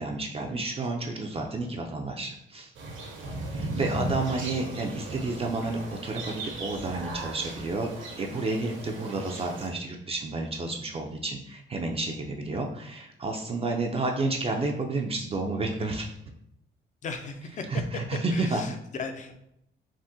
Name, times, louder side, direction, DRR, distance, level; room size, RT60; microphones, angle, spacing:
voice 1, 0.0-2.7 3.4-16.1 17.7-18.6, right 3 dB, 30° right, 2 dB, 0.3 m, -31 dB
sound 1, 2.7-9.7, right 2 dB, 75° right, 0.8 m, -36 dB
voice 2, 17.0-17.7 18.3-19.4, left 4 dB, 40° left, 7 dB, 0.4 m, -37 dB
3.5 x 2.1 x 2.6 m, 0.77 s
cardioid pair, 90°, 20 cm